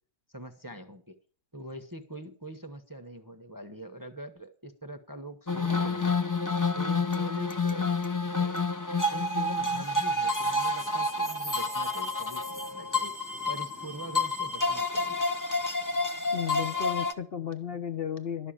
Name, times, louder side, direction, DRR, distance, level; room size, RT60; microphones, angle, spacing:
voice 1, 0.3-1.1 1.5-6.2 6.7-7.9 8.3-8.5 9.1-13.1 13.5-15.2, right 1 dB, 15° right, 6 dB, 0.8 m, -43 dB
sound 1, 5.5-17.1, left 3 dB, 20° left, 0.6 m, -29 dB
voice 2, 16.3-18.5, left 8 dB, 50° left, 7 dB, 0.8 m, -34 dB
12.0 x 6.4 x 8.7 m, 0.43 s
omnidirectional pair, 1.6 m